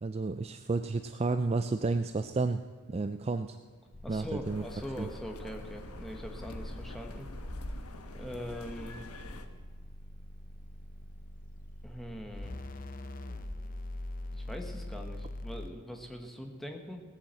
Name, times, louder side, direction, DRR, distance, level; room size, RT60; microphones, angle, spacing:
voice 1, 0.0-2.6 2.9-3.6 4.1-4.6 5.0-5.1, right 3 dB, 30° right, 9 dB, 0.3 m, -31 dB
sound 1, 3.9-15.7, left 1 dB, 40° left, 0.7 m, -44 dB
voice 2, 4.0-7.3 8.1-9.1 11.8-12.6 14.3-17.0, equal, ahead, 3 dB, 1.3 m, -42 dB
sound 2, 4.4-9.5, left 1 dB, 85° left, 1.2 m, -45 dB
17.5 x 8.7 x 7.6 m, 1.5 s
head